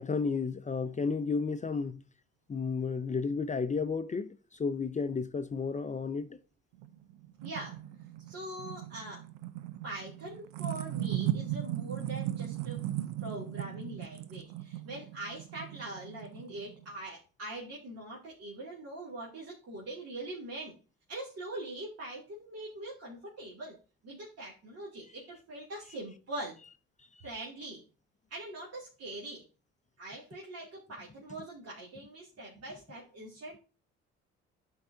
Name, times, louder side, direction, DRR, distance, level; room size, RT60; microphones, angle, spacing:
voice 1, 0.0-2.0 2.5-6.4, left 5 dB, 25° left, 0.6 m, -32 dB
sound 1, 6.8-16.9, right 13 dB, 90° right, 0.6 m, -37 dB
voice 2, 7.4-7.8 8.3-9.2 9.8-12.9 13.2-20.7 21.1-23.8 24.0-26.6 27.2-27.8 28.3-29.4 30.0-33.6, right 1 dB, 55° right, 2.7 m, -43 dB
11.5 x 4.7 x 2.7 m
supercardioid pair, 60°, 29 cm